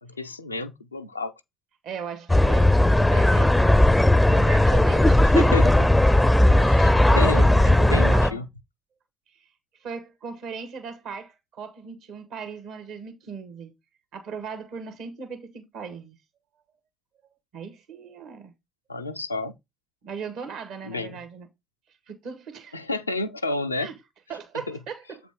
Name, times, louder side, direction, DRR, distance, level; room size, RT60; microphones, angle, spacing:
voice 1, 0.0-1.3 5.2-5.9 6.6-6.9 7.2-7.5 7.9-8.5 18.9-19.5 20.9-21.2 22.7-23.9 24.7-24.8, left 2 dB, 90° left, 0.5 m, -30 dB
voice 2, 1.8-3.8 4.2-5.4 7.1-8.4 9.3-9.5 9.8-13.7 14.1-16.2 17.5-18.5 20.0-21.5 22.1-22.9 23.8-23.9 24.3-25.2, right 6 dB, 65° right, 1.8 m, -37 dB
sound 1, 2.3-8.3, left 1 dB, 10° left, 0.5 m, -17 dB
8.1 x 5.0 x 3.7 m
figure-of-eight pair, 45°, 0 cm